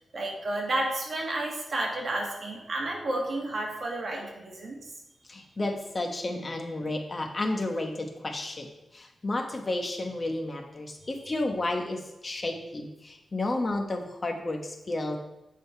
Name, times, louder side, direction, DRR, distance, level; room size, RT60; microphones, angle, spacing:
voice 1, 0.1-4.8, right 1 dB, 50° right, -1 dB, 2.0 m, -31 dB
voice 2, 5.3-8.7 8.9-15.2, left 2 dB, 30° left, 3 dB, 1.2 m, -32 dB
7.9 x 5.2 x 4.5 m, 0.95 s
wide cardioid pair, 130°, 0 cm